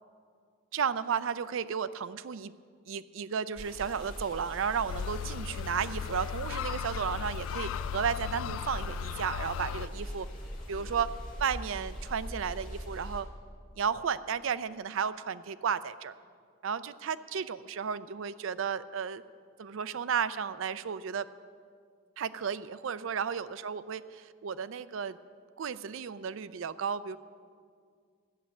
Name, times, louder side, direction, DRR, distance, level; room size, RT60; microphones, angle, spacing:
voice 1, 0.7-2.5 2.9-10.3 10.7-11.1 11.4-13.3 13.8-16.1 16.6-19.2 19.6-21.3 22.2-25.2 25.6-27.2, right 7 dB, 75° right, 15 dB, 0.4 m, -33 dB
sound 1, 3.6-13.2, equal, 40° left, 2.2 m, -42 dB
sound 2, 4.9-9.9, left 9 dB, 85° left, 0.3 m, -37 dB
14.0 x 9.5 x 7.0 m, 2.1 s
head